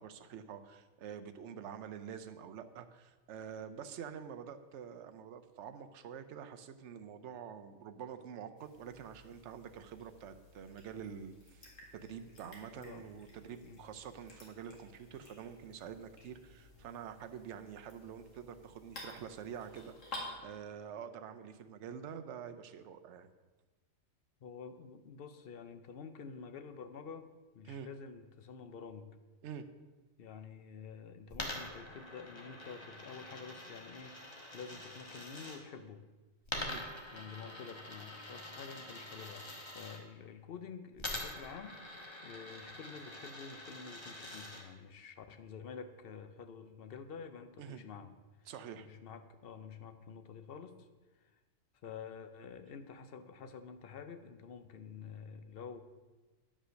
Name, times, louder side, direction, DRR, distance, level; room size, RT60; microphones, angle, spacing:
voice 1, 0.0-19.9 20.4-23.3 27.7-27.9 29.4-29.7 36.5-36.8 47.6-47.8 48.5-48.9, right 8 dB, 65° right, 8 dB, 0.9 m, -47 dB
sound 1, 8.6-20.3, left 2 dB, 75° left, 2.4 m, -53 dB
voice 2, 12.8-13.1 13.6-13.8 24.4-29.2 30.2-36.0 37.1-48.1 48.4-50.9 51.1-51.3 51.8-55.8, left 6 dB, 55° left, 9 dB, 0.8 m, -49 dB
Coin (dropping), 31.3-35.6 36.4-40.0 41.0-44.6, left 1 dB, 20° left, 1.3 m, -45 dB
10.0 x 5.4 x 6.3 m, 1.3 s
omnidirectional pair, 1.3 m